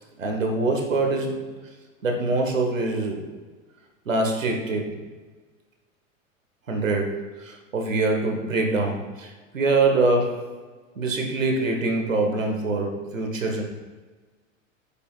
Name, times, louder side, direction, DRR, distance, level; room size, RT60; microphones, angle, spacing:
voice 1, 0.2-1.4 2.0-3.3 4.0-5.0 6.7-10.5 11.0-13.6, right 3 dB, 75° right, 2 dB, 1.4 m, -24 dB
8.8 x 5.3 x 2.4 m, 1.3 s
figure-of-eight pair, 90°, 40 cm